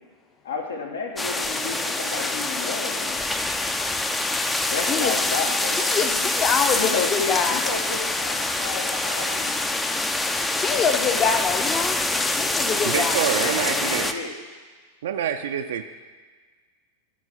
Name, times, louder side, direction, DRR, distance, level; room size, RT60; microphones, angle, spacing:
voice 1, 0.4-3.2 4.6-6.3 6.7-9.6 13.4-14.3, left 4 dB, 65° left, 2 dB, 1.2 m, -32 dB
sound 1, 1.2-14.1, left 2 dB, 10° left, 0.5 m, -25 dB
voice 2, 5.8-7.6 10.6-12.1 12.3-13.2, left 6 dB, 30° left, 6 dB, 0.8 m, -25 dB
voice 3, 12.8-14.2 15.0-15.8, right 8 dB, 60° right, 6 dB, 0.4 m, -26 dB
11.5 x 4.7 x 5.5 m, 1.5 s
figure-of-eight pair, 90°, 0 cm